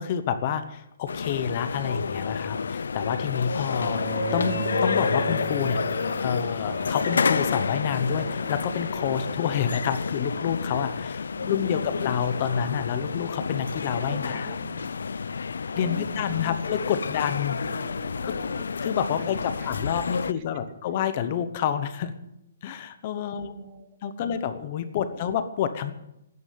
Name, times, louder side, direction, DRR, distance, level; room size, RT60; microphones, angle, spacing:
voice 1, 0.0-4.0 4.3-5.8 6.2-14.5 15.7-17.6 18.2-18.4 18.8-22.1 22.6-23.5 24.0-25.9, left 8 dB, 25° left, 10 dB, 0.9 m, -28 dB
sound 1, 1.1-20.3, left 5 dB, 85° left, 0.5 m, -29 dB
Bowed string instrument, 3.8-9.8, right 9 dB, 85° right, 5.1 m, -37 dB
voice 2, 11.3-12.2 14.0-14.9 15.7-16.6 17.6-18.7 19.2-19.9 20.3-20.8 23.3-24.3 25.1-25.2, right 8 dB, 25° right, 10 dB, 0.9 m, -45 dB
12.5 x 9.6 x 9.5 m, 0.84 s
hypercardioid pair, 180°, 0 cm